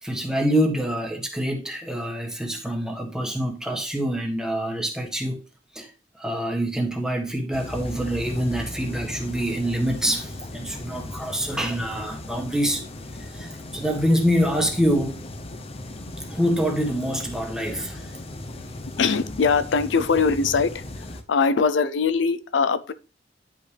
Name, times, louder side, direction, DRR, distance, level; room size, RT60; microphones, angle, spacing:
voice 1, 0.0-5.4 5.7-5.9 6.2-12.8 13.2-15.3 16.3-18.1, equal, 5° right, 1.5 m, -25 dB
sound 1, 7.5-21.2, left 1 dB, 35° left, 0.8 m, -37 dB
voice 2, 19.0-20.8 21.3-22.9, left 5 dB, 90° left, 0.6 m, -21 dB
10.5 x 5.4 x 3.3 m
head